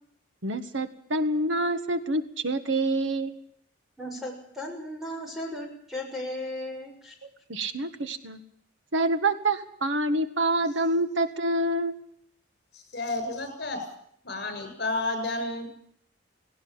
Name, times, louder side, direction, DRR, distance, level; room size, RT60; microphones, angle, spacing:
voice 1, 0.4-3.4 7.5-8.4 8.9-11.9, right 2 dB, 70° right, 10 dB, 1.7 m, -27 dB
voice 2, 4.0-7.1, left 1 dB, ahead, 0 dB, 6.8 m, -36 dB
voice 3, 12.7-13.9 14.2-15.7, left 2 dB, 55° left, 7 dB, 7.1 m, -31 dB
18.5 x 18.0 x 8.9 m, 0.66 s
head